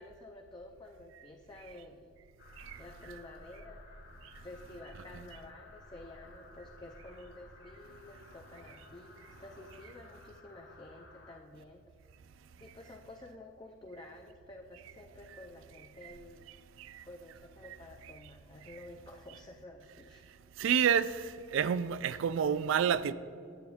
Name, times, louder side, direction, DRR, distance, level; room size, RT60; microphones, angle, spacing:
voice 1, 0.0-2.1 2.8-3.8 4.3-11.8 12.6-16.5 17.0-20.3, left 2 dB, 20° left, 0.4 m, -51 dB
sound 1, 2.4-11.4, left 2 dB, 50° left, 0.9 m, -55 dB
voice 2, 20.6-21.1 21.5-23.1, right 7 dB, 65° right, 0.3 m, -28 dB
9.1 x 8.0 x 3.5 m
head